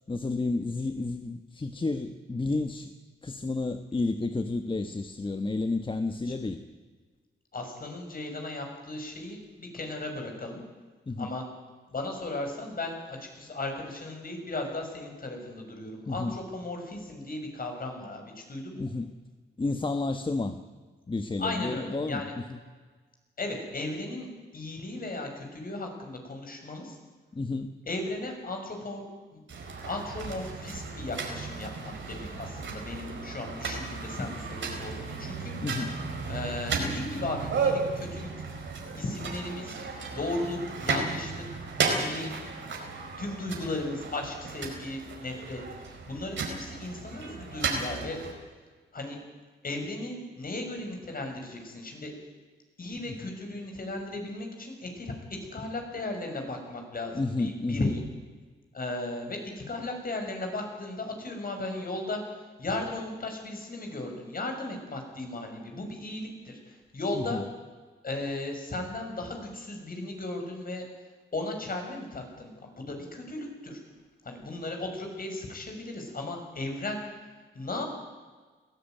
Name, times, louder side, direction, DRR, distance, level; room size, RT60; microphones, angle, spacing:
voice 1, 0.1-2.9 3.2-6.6 11.1-11.3 16.1-16.4 18.8-19.1 19.6-20.6 21.1-22.6 27.3-27.7 35.6-35.9 53.1-53.2 57.1-57.9 67.1-67.4, left 3 dB, 25° left, 8 dB, 1.3 m, -31 dB
voice 2, 7.5-10.6 11.2-11.4 11.9-18.8 21.4-22.3 23.4-27.0 27.8-29.0 29.3-29.4 29.8-35.5 36.3-38.3 39.0-39.8 40.1-41.4 41.9-42.4 43.2-48.2 48.9-49.2 49.6-52.1 52.8-58.0 58.7-67.4 68.0-70.9 71.3-73.8 74.2-77.0 77.5-77.9, left 2 dB, 45° left, 3 dB, 6.4 m, -36 dB
sound 1, 29.5-48.3, right 4 dB, 70° right, 4.9 m, -34 dB
21.5 x 15.5 x 9.2 m, 1.4 s
cardioid pair, 65°, 20 cm